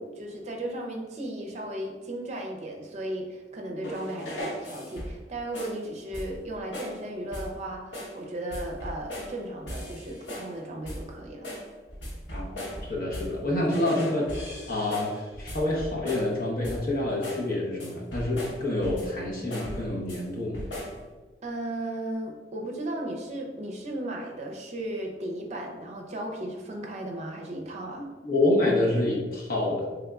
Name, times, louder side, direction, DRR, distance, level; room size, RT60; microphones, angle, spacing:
voice 1, 0.0-11.5 21.4-28.1, right 1 dB, 40° right, 1 dB, 0.6 m, -35 dB
sound 1, 3.8-5.2 5.5-5.8 6.1-6.5 6.7-7.0 7.3-7.6 7.9-8.2 8.5-9.4 9.7-10.6 10.8-11.1 11.4-13.4 13.7-16.4 16.6-16.9 17.2-17.5 17.8-19.2 19.5-20.2 20.5-21.0, equal, 80° left, 1.0 m, -38 dB
voice 2, 12.3-12.6 12.9-14.3 14.7-20.6 28.2-29.9, left 1 dB, 55° left, -4 dB, 0.9 m, -27 dB
3.6 x 3.3 x 2.3 m, 1.3 s
head